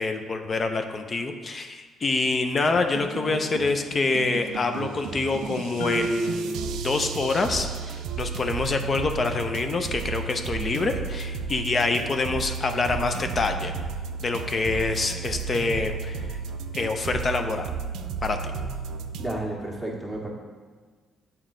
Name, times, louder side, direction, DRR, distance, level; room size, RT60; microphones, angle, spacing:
voice 1, 0.0-13.7 14.2-16.2 16.7-17.7 18.2-18.4, left 3 dB, 40° left, 6 dB, 0.6 m, -26 dB
sound 1, 2.7-19.3, right 6 dB, 80° right, 0.4 m, -33 dB
Marimba xylophone, 5.8-7.6, right 1 dB, 85° left, 0.9 m, -31 dB
voice 2, 19.2-20.3, right 1 dB, 10° left, -2 dB, 1.7 m, -31 dB
7.2 x 4.5 x 3.8 m, 1.5 s
supercardioid pair, 70°, 0 cm